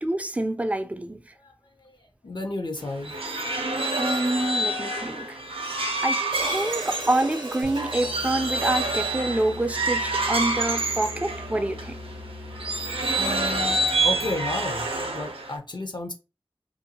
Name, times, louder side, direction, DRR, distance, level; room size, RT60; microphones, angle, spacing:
voice 1, 0.0-1.3 3.9-5.4 5.8-12.0, right 2 dB, 15° right, 0.4 m, -27 dB
voice 2, 1.8-3.2 10.5-10.6 13.2-16.1, left 2 dB, 55° left, 0.5 m, -33 dB
sound 1, 2.8-11.9 12.5-15.5, right 2 dB, 85° right, 0.5 m, -27 dB
Hi-hat, 6.3-10.6, right 2 dB, 50° right, 0.7 m, -39 dB
sound 2, 7.6-15.3, left 3 dB, 80° left, 1.2 m, -41 dB
2.6 x 2.2 x 2.7 m
wide cardioid pair, 45°, 9 cm